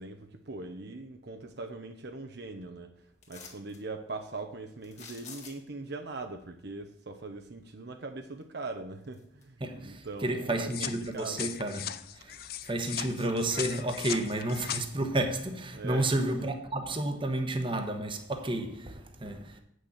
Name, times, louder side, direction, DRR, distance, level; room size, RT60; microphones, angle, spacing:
voice 1, 0.0-2.9 3.3-11.5 12.3-12.4 15.7-16.5, right 3 dB, 60° right, 0.8 m, -41 dB
sound 1, 3.2-3.8 4.8-5.9 8.4-8.5 9.0-9.7 10.1-11.2 11.6-11.7, left 6 dB, 35° left, 1.8 m, -49 dB
voice 2, 9.6-11.8 12.1-12.4 12.6-19.6, right 1 dB, 25° right, 1.1 m, -31 dB
sound 2, 10.7-14.8, left 11 dB, 55° left, 0.5 m, -38 dB
8.3 x 6.4 x 7.2 m
head